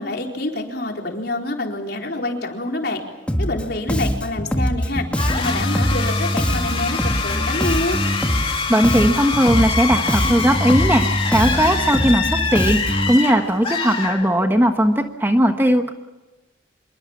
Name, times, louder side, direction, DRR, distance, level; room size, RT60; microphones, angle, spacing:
voice 1, 0.0-3.0 3.4-5.1 5.3-8.0, left 2 dB, 60° left, 2 dB, 4.3 m, -26 dB
Bass guitar, 3.3-3.6 3.9-8.6 8.8-13.2, equal, 5° left, 1.7 m, -23 dB
sound 1, 5.1-14.7, left 5 dB, 30° left, 3.0 m, -25 dB
voice 2, 8.4-15.9, equal, 10° right, 6 dB, 1.3 m, -18 dB
26.5 x 22.5 x 7.3 m, 1.1 s
head